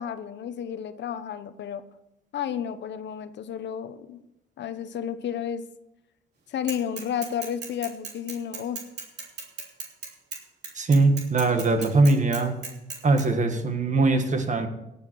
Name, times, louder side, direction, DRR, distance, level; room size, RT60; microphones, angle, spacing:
voice 1, 0.0-1.8 2.3-4.2 4.6-5.7 6.5-8.8, left 8 dB, 65° left, 12 dB, 0.9 m, -32 dB
Bicycle / Mechanisms, 6.7-13.2, right 5 dB, 55° right, 3.3 m, -37 dB
voice 2, 10.8-12.6 13.0-14.7, right 3 dB, 40° right, 7 dB, 1.8 m, -21 dB
18.0 x 7.2 x 4.7 m, 0.88 s
cardioid pair, 90°, 20 cm